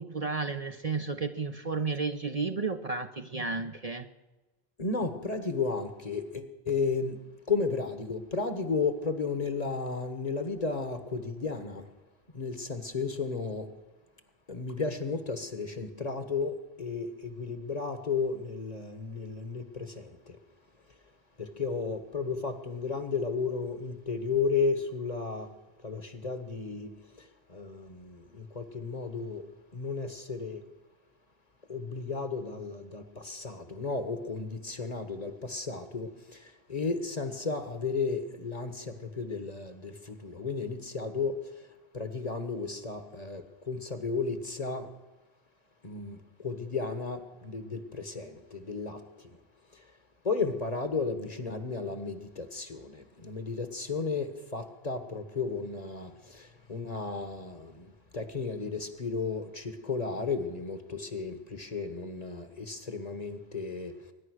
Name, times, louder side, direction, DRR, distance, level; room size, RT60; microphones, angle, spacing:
voice 1, 0.0-4.1, right 4 dB, 40° right, 0.7 m, -32 dB
voice 2, 4.8-7.2 7.5-11.9 12.3-13.7 14.5-20.4 21.4-25.5 25.8-29.4 29.7-30.6 31.7-41.7 41.9-44.9 45.8-49.4 49.7-49.8 50.2-63.9, left 4 dB, 40° left, 1.4 m, -34 dB
21.5 x 10.5 x 6.4 m
omnidirectional pair, 1.1 m